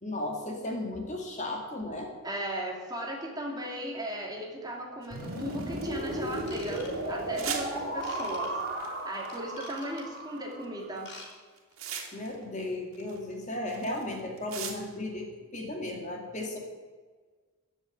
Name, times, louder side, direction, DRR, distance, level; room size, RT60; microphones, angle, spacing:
voice 1, 0.0-2.1 12.1-16.6, left 1 dB, 30° left, 1 dB, 2.2 m, -35 dB
voice 2, 2.2-8.6 9.0-11.1, right 1 dB, 15° right, -1 dB, 2.5 m, -37 dB
sound 1, 5.0-6.6 7.3-7.7 8.8-9.5 10.4-10.7 11.0-12.4 12.7-15.0, right 7 dB, 70° right, 2.6 m, -40 dB
sound 2, 5.1-11.0, right 1 dB, 45° right, 4.6 m, -35 dB
Ratchet pawl / Tools, 6.4-7.3 8.0-8.5 9.3-10.2 10.9-11.3 11.5-11.7 12.2-12.3, left 3 dB, 50° left, 4.7 m, -47 dB
15.5 x 7.2 x 9.3 m, 1.4 s
head